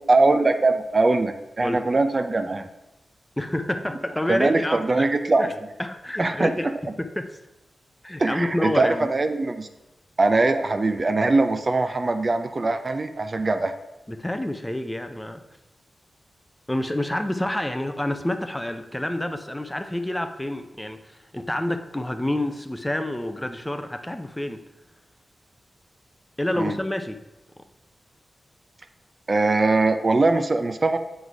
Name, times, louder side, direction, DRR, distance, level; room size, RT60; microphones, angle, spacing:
voice 1, 0.1-2.7 4.3-5.5 6.2-6.7 8.2-9.7 10.2-13.7 26.6-26.7 29.3-31.0, right 3 dB, 40° right, 8 dB, 0.5 m, -21 dB
voice 2, 3.4-5.1 5.4-5.5 5.8-6.7 7.2-7.3 8.0-9.1 14.1-15.4 16.7-24.6 26.4-27.2, left 1 dB, 10° left, 7 dB, 0.5 m, -28 dB
7.9 x 4.0 x 4.7 m, 0.97 s
cardioid pair, 75°, 0 cm